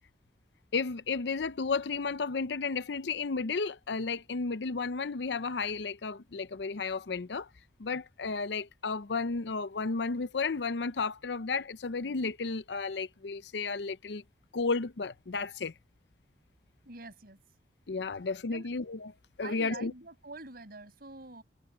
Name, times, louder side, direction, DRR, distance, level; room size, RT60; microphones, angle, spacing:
voice 1, 0.7-7.5 7.8-14.2 14.5-15.7 17.9-19.1 19.4-19.9, left 4 dB, 70° left, 0.6 m, -33 dB
voice 2, 16.8-17.4 18.5-18.7 19.4-21.4, right 2 dB, 60° right, 6.3 m, -46 dB
head